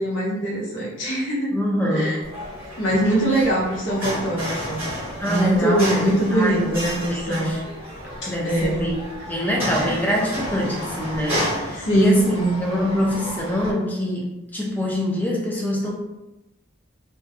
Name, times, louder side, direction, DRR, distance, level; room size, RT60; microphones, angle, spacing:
voice 1, 0.0-1.5 1.9-2.2 2.8-4.9 5.2-7.6 8.2-8.9 11.7-12.6, right 1 dB, 60° left, -6 dB, 0.8 m, -22 dB
voice 2, 1.5-2.2 3.3-3.4 5.2-7.6 8.3-9.0 9.3-12.3 12.6-15.9, left 1 dB, 10° left, -2 dB, 0.3 m, -25 dB
sound 1, 2.2-13.7, equal, 10° right, 0.9 m, -31 dB
2.2 x 2.1 x 2.8 m, 0.96 s
head